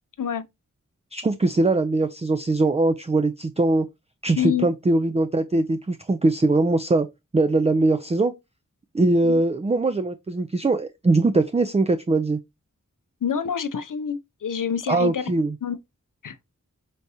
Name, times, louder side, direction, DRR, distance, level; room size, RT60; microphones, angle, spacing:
voice 1, 1.1-3.9 4.2-7.1 7.3-8.3 8.9-12.4 14.9-15.5, right 2 dB, 20° right, 0.3 m, -21 dB
voice 2, 4.4-4.7 9.2-9.4 13.2-15.3 15.6-15.8 16.2-16.4, left 8 dB, 75° left, 0.5 m, -27 dB
4.1 x 3.5 x 2.6 m
wide cardioid pair, 40°, 32 cm